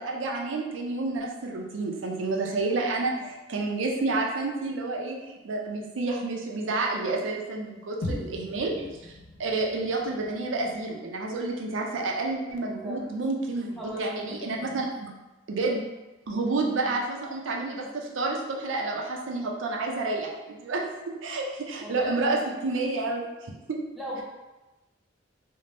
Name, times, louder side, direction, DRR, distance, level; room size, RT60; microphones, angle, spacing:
voice 1, 0.0-8.7 9.4-15.1 15.5-15.8 16.3-20.8 21.2-23.8, right 3 dB, 80° right, 0 dB, 0.5 m, -29 dB
sound 1, 8.0-12.4, left 1 dB, 70° left, 0.4 m, -41 dB
voice 2, 13.8-14.6 16.9-17.0 21.8-22.4 24.0-24.2, equal, ahead, -7 dB, 0.6 m, -38 dB
2.6 x 2.1 x 3.2 m, 1.1 s
head